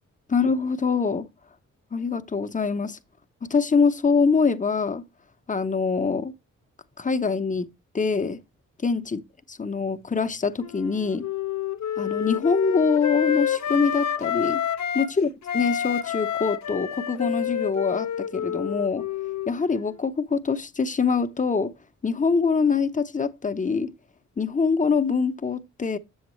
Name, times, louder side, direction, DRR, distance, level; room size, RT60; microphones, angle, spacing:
voice 1, 0.3-1.3 1.9-3.0 3.4-5.0 5.5-6.3 7.0-7.7 7.9-8.4 8.8-9.2 9.6-11.3 12.0-14.6 14.9-19.1 19.5-21.7 22.0-23.9 24.4-26.0, left 5 dB, 25° left, 0.7 m, -24 dB
Wind instrument woodwind instrument, 10.6-15.1 15.4-19.9, left 9 dB, 60° left, 0.7 m, -28 dB
7.3 x 7.2 x 3.0 m
cardioid pair, 65°, 32 cm